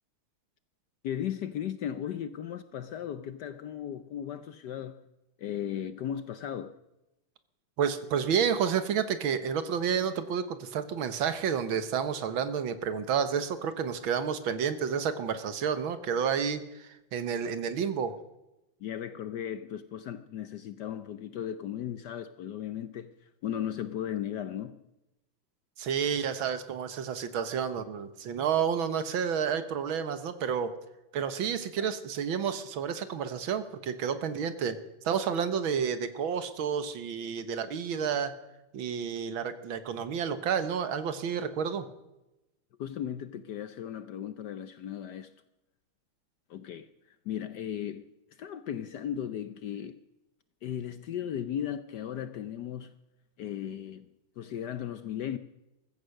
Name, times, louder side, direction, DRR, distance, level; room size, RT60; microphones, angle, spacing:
voice 1, 1.0-5.1 5.4-6.7 18.8-24.8 31.8-31.9 42.8-45.3 46.5-50.0 50.6-52.9 53.4-55.4, left 10 dB, 70° left, 1.1 m, -36 dB
voice 2, 7.8-18.2 25.8-30.8 31.1-34.8 35.0-38.3 38.7-41.9, right 7 dB, 70° right, 1.9 m, -30 dB
15.5 x 14.0 x 6.5 m
omnidirectional pair, 2.3 m